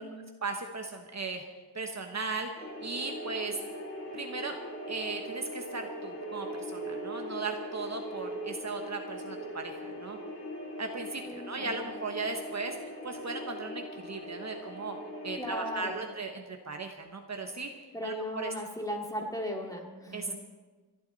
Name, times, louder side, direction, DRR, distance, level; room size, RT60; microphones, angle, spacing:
voice 1, 0.4-1.4 1.7-2.5 2.8-3.6 4.1-4.6 4.9-10.2 10.8-12.8 13.0-15.0 15.2-17.7 18.0-18.5 20.1-20.3, right 3 dB, 40° right, 4 dB, 1.2 m, -37 dB
sound 1, 2.6-16.0, equal, 30° left, 3.0 m, -40 dB
voice 2, 11.3-11.8 15.4-16.0 17.9-20.3, equal, 10° left, 0 dB, 2.3 m, -37 dB
29.0 x 11.5 x 4.1 m, 1.4 s
wide cardioid pair, 165°, 42 cm